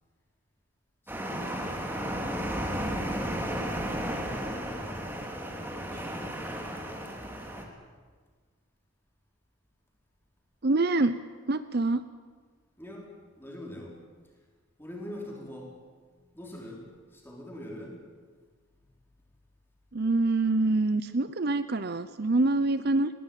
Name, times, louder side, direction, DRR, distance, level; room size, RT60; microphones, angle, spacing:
voice 1, 1.0-3.6 4.6-6.9 12.8-14.0 14.8-18.0, left 1 dB, 10° left, -1 dB, 4.6 m, -45 dB
sound 1, 1.1-7.6, equal, 10° right, 2.5 m, -34 dB
voice 2, 10.6-11.2 11.5-12.0 19.9-23.1, right 2 dB, 50° right, 13 dB, 0.6 m, -25 dB
20.5 x 18.0 x 9.1 m, 1.5 s
head